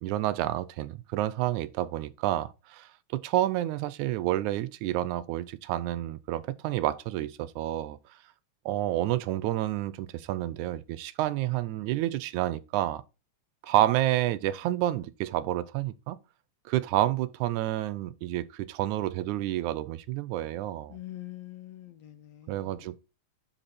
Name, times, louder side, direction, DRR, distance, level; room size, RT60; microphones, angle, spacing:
voice 1, 0.0-8.0 8.7-13.0 13.6-16.2 16.7-21.0 22.5-23.0, right 14 dB, 90° right, 2.1 m, -29 dB
voice 2, 20.9-22.9, left 15 dB, 75° left, 1.7 m, -44 dB
10.0 x 4.3 x 4.2 m
omnidirectional pair, 3.4 m